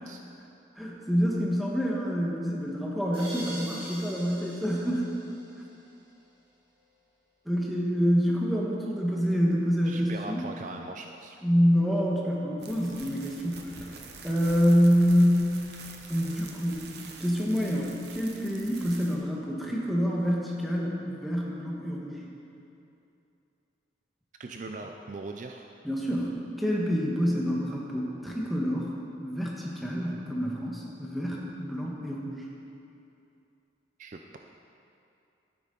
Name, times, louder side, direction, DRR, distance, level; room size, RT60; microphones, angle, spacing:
voice 1, 0.8-5.1 7.4-10.4 11.4-13.6 14.2-15.5 16.1-16.8 17.2-22.2 25.8-28.9 29.2-32.5, equal, ahead, -4 dB, 1.3 m, -27 dB
sound 1, 3.1-6.0, equal, 25° right, 2.6 m, -43 dB
voice 2, 9.8-11.4 24.4-25.7 34.0-34.4, right 3 dB, 40° right, 4 dB, 0.4 m, -40 dB
sound 2, 12.6-19.1, right 4 dB, 55° right, 0.9 m, -46 dB
12.5 x 9.6 x 3.9 m, 2.7 s
head